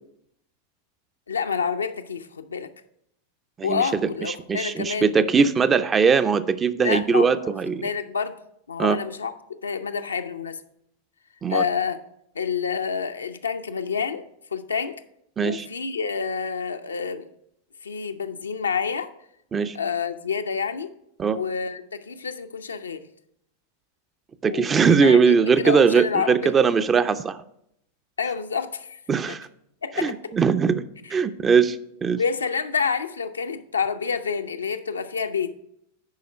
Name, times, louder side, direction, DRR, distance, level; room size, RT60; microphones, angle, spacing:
voice 1, 1.3-2.7 3.6-5.1 6.8-7.4 7.7-8.4 8.7-9.3 9.6-10.6 11.5-12.0 12.3-14.2 14.5-15.0 15.4-17.3 17.8-19.1 19.7-20.9 21.3-23.1 24.5-24.7 25.0-26.5 28.2-29.0 29.3-29.4 29.8-30.1 32.2-35.5, left 6 dB, 75° left, 8 dB, 0.6 m, -28 dB
voice 2, 4.5-7.9 8.8-9.0 11.4-11.6 15.4-15.7 19.5-19.8 21.2-21.4 24.4-27.4 29.1-29.5 30.0-30.8 31.1-32.2, right 5 dB, 20° right, 12 dB, 0.5 m, -20 dB
10.5 x 4.9 x 5.2 m, 0.75 s
figure-of-eight pair, 90°, 0 cm